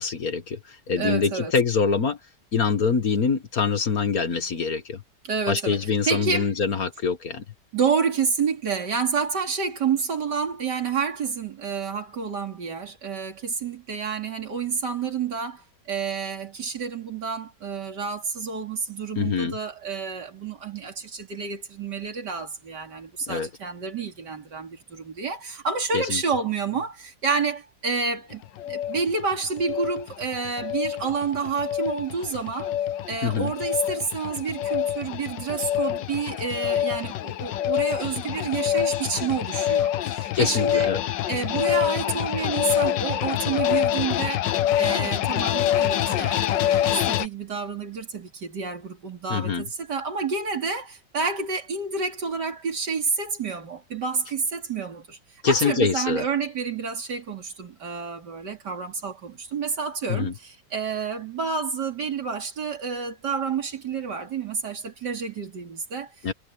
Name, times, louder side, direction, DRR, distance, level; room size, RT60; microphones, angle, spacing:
voice 1, 0.0-2.2 2.5-5.0 5.5-7.4 19.2-19.6 23.3-23.5 25.9-26.2 33.2-33.5 40.3-41.0 49.3-49.7 55.4-56.3 60.1-60.3 66.2-66.3, left 5 dB, 55° left, 1.9 m, -24 dB
voice 2, 0.9-1.5 5.2-6.5 7.7-32.7 33.1-40.9 41.3-44.5 44.8-55.2 55.5-66.1, right 5 dB, 70° right, 3.3 m, -29 dB
sound 1, 28.3-47.3, left 11 dB, 80° left, 1.5 m, -26 dB
omnidirectional pair, 1.9 m